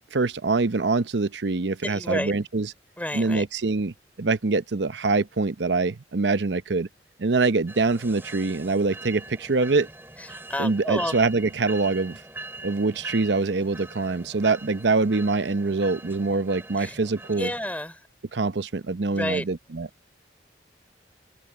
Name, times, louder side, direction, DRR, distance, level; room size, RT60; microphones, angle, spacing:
voice 1, 0.1-2.7 3.1-6.9 7.2-9.9 10.6-12.2 12.6-17.5 18.3-19.9, right 3 dB, 80° right, 0.8 m, -24 dB
voice 2, 1.8-2.3 3.0-3.4 10.2-11.2 16.8-16.9 17.4-18.0 19.1-19.5, left 1 dB, 10° left, 4.1 m, -30 dB
sound 1, 7.7-17.7, right 2 dB, 15° right, 3.3 m, -42 dB
open air
head